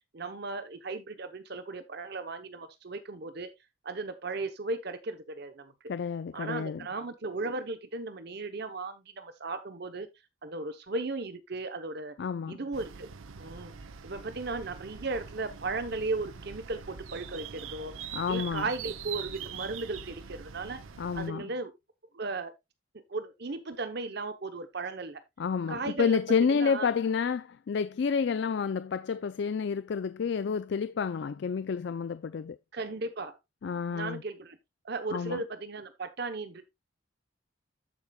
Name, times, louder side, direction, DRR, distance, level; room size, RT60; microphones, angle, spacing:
voice 1, 0.1-3.5 3.8-5.7 6.3-10.1 10.4-12.1 12.5-13.1 13.4-13.7 14.0-17.9 18.3-20.8 21.1-21.7 22.1-22.5 23.1-25.2 25.7-26.2 26.5-26.9 32.7-33.4 33.9-34.6 34.8-36.7, right 3 dB, 50° right, 0.8 m, -36 dB
voice 2, 5.9-6.9 12.2-12.6 18.1-18.7 21.0-21.5 25.4-32.6 33.6-34.2 35.1-35.4, left 6 dB, 55° left, 0.3 m, -29 dB
sound 1, 12.7-21.3, right 7 dB, 85° right, 0.7 m, -43 dB
14.5 x 5.0 x 2.3 m
head